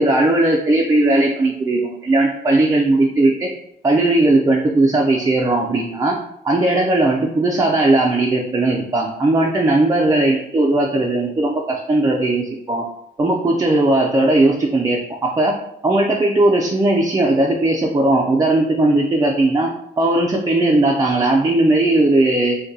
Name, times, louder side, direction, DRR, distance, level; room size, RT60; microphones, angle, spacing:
voice 1, 0.0-3.5 3.8-6.1 6.4-12.8 13.2-15.5 15.8-19.7 20.0-22.6, right 2 dB, 20° right, 0 dB, 0.4 m, -17 dB
2.6 x 2.2 x 3.7 m, 0.76 s
cardioid pair, 90°, 20 cm